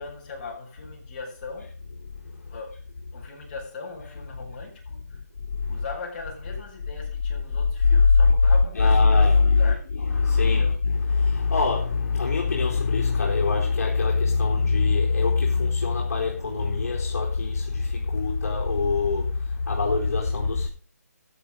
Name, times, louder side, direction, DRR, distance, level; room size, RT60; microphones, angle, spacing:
voice 1, 0.0-1.7 2.5-2.8 3.1-5.2 5.7-9.8 10.4-10.7, left 4 dB, 35° left, 6.2 m, -39 dB
voice 2, 2.1-2.6 5.1-5.2 5.6-5.8 7.8-20.7, left 4 dB, 60° left, 4.1 m, -22 dB
13.5 x 7.7 x 5.4 m
hypercardioid pair, 160°, 9 cm